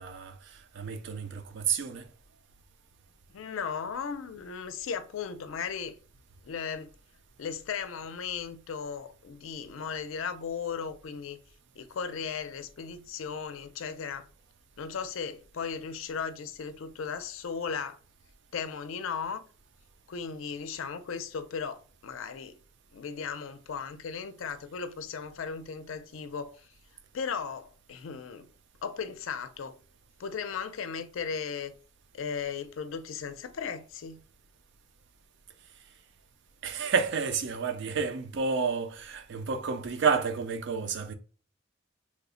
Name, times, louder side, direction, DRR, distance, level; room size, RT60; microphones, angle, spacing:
voice 1, 0.0-2.1 36.6-41.1, right 5 dB, 60° right, 0.4 m, -30 dB
voice 2, 3.3-6.0 6.4-6.9 7.4-11.4 11.8-14.3 14.8-18.0 18.5-19.4 20.1-22.6 22.9-26.7 27.1-28.5 28.8-29.8 30.2-31.7 32.1-34.2, left 6 dB, 75° left, 0.4 m, -36 dB
3.1 x 2.0 x 3.7 m
head